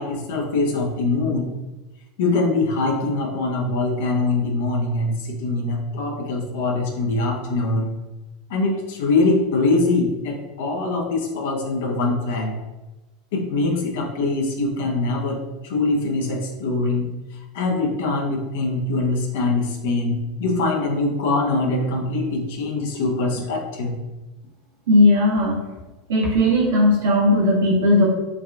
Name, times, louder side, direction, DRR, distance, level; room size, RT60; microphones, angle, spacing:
voice 1, 0.0-1.5 2.2-7.9 8.5-12.6 13.3-24.0, left 2 dB, 70° left, 1 dB, 0.6 m, -23 dB
voice 2, 24.9-25.6 26.1-28.0, left 1 dB, 75° right, -5 dB, 0.9 m, -17 dB
3.4 x 2.4 x 2.3 m, 1.1 s
hypercardioid pair, 85°, 0 cm